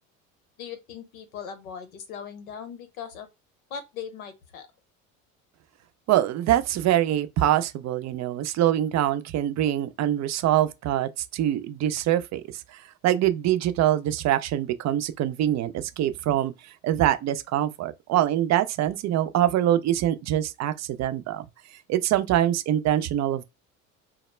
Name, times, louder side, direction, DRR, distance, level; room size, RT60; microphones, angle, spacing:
voice 1, 0.6-3.3 3.7-4.7, left 7 dB, 85° left, 0.8 m, -39 dB
voice 2, 6.1-12.4 12.7-16.5 16.8-21.4 21.9-23.4, right 12 dB, 45° right, 0.5 m, -24 dB
2.1 x 2.0 x 3.2 m
hypercardioid pair, 70°, 41 cm